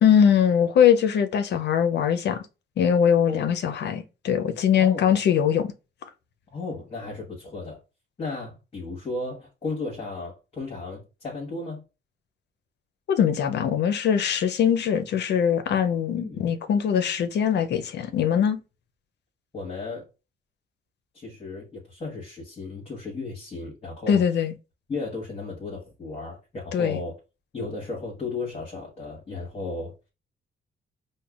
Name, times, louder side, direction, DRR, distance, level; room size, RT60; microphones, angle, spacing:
voice 1, 0.0-2.4 2.8-5.7 13.1-18.6 24.1-24.5 26.7-27.0, left 8 dB, 60° left, 0.5 m, -22 dB
voice 2, 4.8-5.1 6.5-7.8 8.2-11.8 16.2-16.5 19.5-20.1 21.1-24.2 24.9-27.1 27.5-29.9, left 3 dB, 30° left, 1.2 m, -34 dB
5.1 x 2.2 x 2.3 m
cardioid pair, 90°, 20 cm